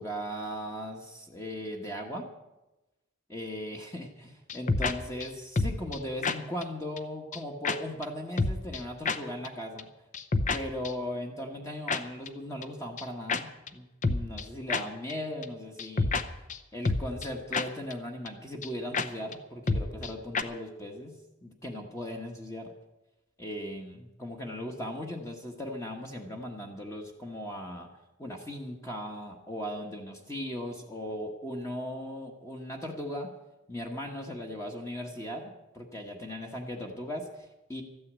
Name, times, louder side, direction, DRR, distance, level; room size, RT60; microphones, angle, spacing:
voice 1, 0.0-2.3 3.3-9.9 10.5-16.1 16.7-22.7 23.4-27.9 28.2-33.3 33.7-37.8, left 1 dB, 15° left, 1 dB, 1.2 m, -38 dB
sound 1, 4.5-4.9 5.2-5.3 5.6-6.0 6.2-6.4 6.6-6.7 7.0-7.1 7.3-7.4 7.6-7.8 8.0-8.1 8.4-8.8 9.1-9.2 9.4-9.5 9.8-9.9 10.1-10.6 10.8-10.9 11.9-12.0 12.3-12.4 12.6-12.7 13.0-13.1 13.3-13.4 13.7-13.8 14.0-14.4 14.7-14.8 15.1-15.2 15.4-15.5 15.8-16.2 16.5-16.6 16.8-17.3 17.5-17.7 17.9-18.0 18.3-18.4 18.6-18.7 18.9-19.1 19.3-19.4 19.7-20.1 20.3-20.4, left 3 dB, 35° left, 0.7 m, -28 dB
13.5 x 9.5 x 8.1 m, 1.0 s
head